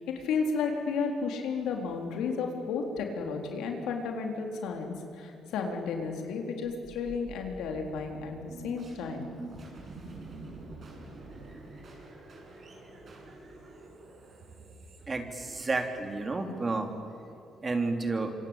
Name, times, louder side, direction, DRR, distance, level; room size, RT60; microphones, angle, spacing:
voice 1, 0.0-9.3, left 5 dB, 90° left, 3 dB, 3.9 m, -33 dB
sound 1, 6.6-15.8, right 3 dB, 50° right, 7.3 m, -47 dB
voice 2, 15.1-16.9 17.6-18.3, right 3 dB, 30° right, 5 dB, 3.4 m, -31 dB
26.0 x 25.5 x 9.0 m, 2.9 s
cardioid pair, 90°, 0 cm